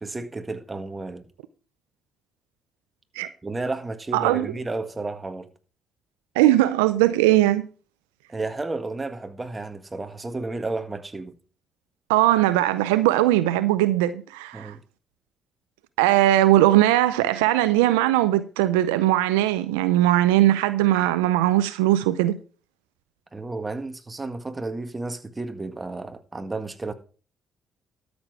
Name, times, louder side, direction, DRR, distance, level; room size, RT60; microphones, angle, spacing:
voice 1, 0.0-1.3 3.4-5.5 8.3-11.4 14.5-14.8 23.3-26.9, right 3 dB, 25° right, 1.7 m, -32 dB
voice 2, 4.1-4.5 6.4-7.6 12.1-14.7 16.0-22.4, right 14 dB, 90° right, 0.5 m, -20 dB
12.5 x 7.1 x 4.7 m
hypercardioid pair, 50°, 0 cm